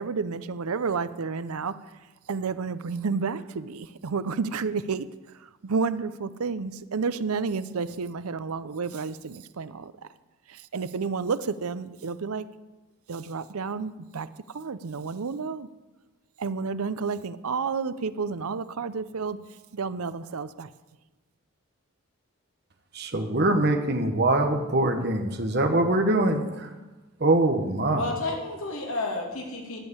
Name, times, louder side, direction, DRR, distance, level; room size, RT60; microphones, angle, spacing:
voice 1, 0.0-1.7 2.3-5.1 5.6-9.9 10.7-12.4 13.1-14.3 14.5-15.7 16.4-19.4 19.7-20.7, right 5 dB, 90° right, 14 dB, 0.6 m, -30 dB
voice 2, 22.9-26.7 27.2-28.1, right 2 dB, 50° right, 5 dB, 1.1 m, -23 dB
voice 3, 27.9-29.8, left 2 dB, 80° left, 0 dB, 2.6 m, -31 dB
11.5 x 7.4 x 8.1 m, 1.1 s
head